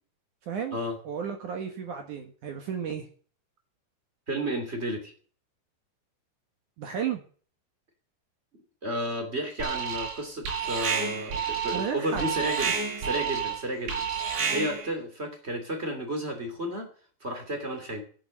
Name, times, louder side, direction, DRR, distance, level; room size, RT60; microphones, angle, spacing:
voice 1, 0.4-0.8 1.0-3.1 6.8-7.2 11.7-12.3 12.6-12.7 14.4-14.7, right 7 dB, 60° right, 5 dB, 2.3 m, -33 dB
voice 2, 4.3-5.1 8.8-14.1 14.5-16.9 17.2-18.0, right 1 dB, 20° right, 6 dB, 2.0 m, -32 dB
Alarm, 9.6-10.2 10.4-14.9, right 6 dB, 85° right, 8.1 m, -30 dB
11.5 x 9.9 x 7.7 m, 0.44 s
omnidirectional pair, 5.1 m